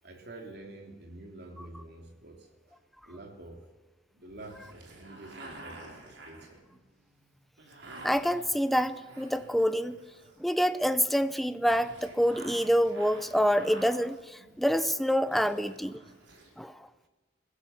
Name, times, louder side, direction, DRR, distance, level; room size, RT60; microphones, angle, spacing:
voice 1, 0.0-2.8 3.1-3.7 4.1-6.6 8.3-8.4, right 2 dB, 60° right, 3 dB, 3.5 m, -48 dB
sound 1, 4.4-10.6 11.6-14.9 15.2-16.5, right 2 dB, 80° right, 5.3 m, -50 dB
voice 2, 8.0-10.0 10.4-16.0 16.6-16.9, equal, ahead, 11 dB, 0.7 m, -27 dB
23.0 x 16.0 x 7.3 m, 1.2 s
head